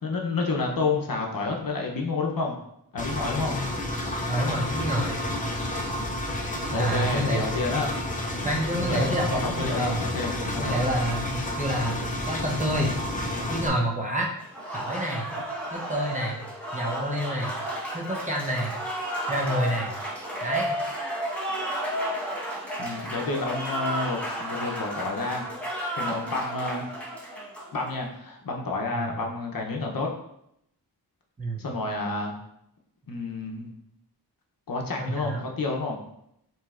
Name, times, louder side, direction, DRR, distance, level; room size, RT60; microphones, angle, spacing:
voice 1, 0.0-2.6 2.9-3.6 6.7-7.9 8.7-10.8 22.8-25.4 26.0-26.9 27.7-30.1 31.6-32.3 33.1-33.7 34.7-36.0, left 3 dB, 55° left, 0 dB, 0.8 m, -29 dB
Engine, 3.0-13.7, left 1 dB, 20° left, 0.5 m, -30 dB
voice 2, 4.3-5.2 6.7-7.4 8.4-10.0 10.6-12.0 12.3-13.0 13.5-14.3 14.7-15.3 15.7-16.4 16.7-17.5 17.9-18.7 19.3-19.9 20.4-20.8 28.9-29.2 31.4-31.7 35.0-35.4, equal, 20° right, -2 dB, 0.7 m, -28 dB
Applause, 14.4-28.0, right 1 dB, 5° left, 1.0 m, -32 dB
7.2 x 3.0 x 2.4 m, 0.77 s
wide cardioid pair, 150°, 42 cm